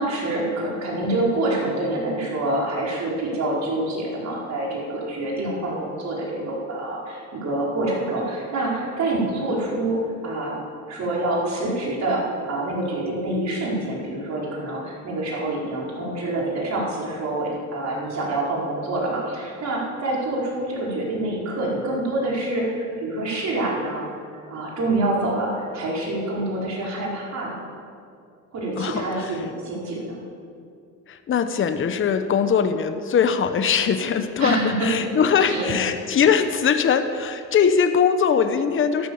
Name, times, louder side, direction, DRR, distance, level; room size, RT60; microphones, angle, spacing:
voice 1, 0.0-10.6 10.9-24.0 24.3-27.6 28.5-30.2 34.4-34.9 35.5-35.7, right 2 dB, 60° right, -4 dB, 4.6 m, -26 dB
voice 2, 28.8-29.3 31.1-39.1, left 7 dB, 40° left, 9 dB, 0.9 m, -21 dB
13.0 x 12.0 x 7.1 m, 2.3 s
cardioid pair, 110°, 32 cm